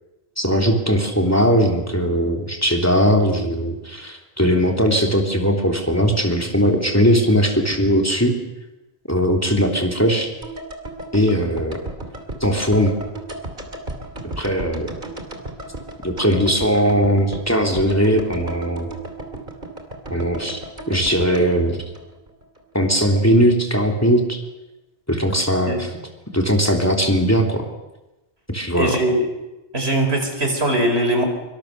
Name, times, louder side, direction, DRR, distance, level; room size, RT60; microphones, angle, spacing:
voice 1, 0.4-8.4 9.1-10.3 11.1-11.8 12.4-13.0 14.4-14.9 16.0-18.9 20.1-20.6 20.9-21.8 22.7-24.4 25.1-25.9 26.3-27.6 28.5-29.0, equal, 15° left, 1 dB, 3.2 m, -19 dB
sound 1, 10.4-22.6 22.9-23.0, right 2 dB, 50° right, 3.2 m, -34 dB
voice 2, 28.7-29.1 29.7-31.2, right 1 dB, 80° right, 4 dB, 4.8 m, -20 dB
25.0 x 24.5 x 6.8 m, 1.0 s
omnidirectional pair, 1.0 m